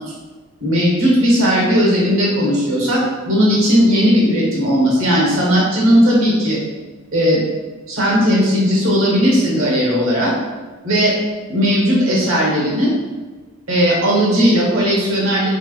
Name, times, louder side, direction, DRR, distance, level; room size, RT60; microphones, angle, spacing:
voice 1, 0.6-6.6 7.1-7.4 7.9-10.3 10.8-11.1 11.5-12.9 13.7-15.5, equal, 70° right, -4 dB, 1.2 m, -16 dB
3.4 x 3.0 x 2.3 m, 1.3 s
head